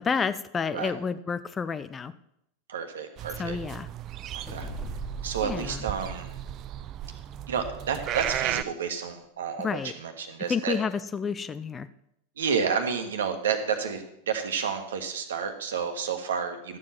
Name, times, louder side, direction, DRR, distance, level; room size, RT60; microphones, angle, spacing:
voice 1, 0.0-2.1 3.4-3.9 5.4-5.9 9.6-9.9 10.5-11.9, left 6 dB, 20° left, 14 dB, 0.5 m, -30 dB
voice 2, 2.7-3.6 4.3-4.7 5.2-6.3 7.5-10.8 12.4-16.8, right 6 dB, 65° right, 6 dB, 1.5 m, -30 dB
sound 1, 3.2-8.6, right 12 dB, 35° right, 0.5 m, -35 dB
sound 2, 4.5-7.2, right 2 dB, 5° right, 1.8 m, -39 dB
13.5 x 7.6 x 5.9 m, 0.79 s
figure-of-eight pair, 90°, 0 cm